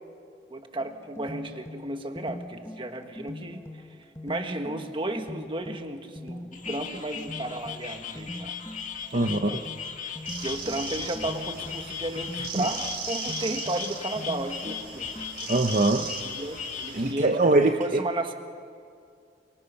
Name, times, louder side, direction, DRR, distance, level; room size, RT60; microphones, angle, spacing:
voice 1, 0.5-3.8 4.2-8.5 9.1-9.7 10.0-10.1 10.4-15.1 16.0-18.3, right 1 dB, 30° right, 6 dB, 1.6 m, -34 dB
sound 1, 0.8-15.7, left 1 dB, 15° left, 1.2 m, -43 dB
sound 2, 6.5-17.0, left 7 dB, 45° left, 2.0 m, -38 dB
voice 2, 9.1-9.6 12.6-12.7 15.5-16.1 16.9-18.0, right 2 dB, 45° right, 5 dB, 0.9 m, -23 dB
sound 3, 10.2-17.1, right 5 dB, 60° right, 5.7 m, -38 dB
29.0 x 25.0 x 5.8 m, 2.4 s
head